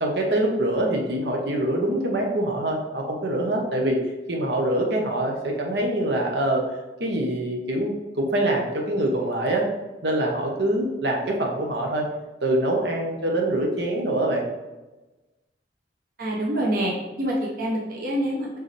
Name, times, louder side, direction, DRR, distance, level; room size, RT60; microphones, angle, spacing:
voice 1, 0.0-4.0 4.3-6.7 7.0-9.7 10.0-12.1 12.4-14.5, right 1 dB, 75° right, 0 dB, 1.1 m, -24 dB
voice 2, 16.2-18.5, right 1 dB, 50° right, -2 dB, 0.9 m, -26 dB
7.0 x 4.0 x 3.3 m, 1.1 s
head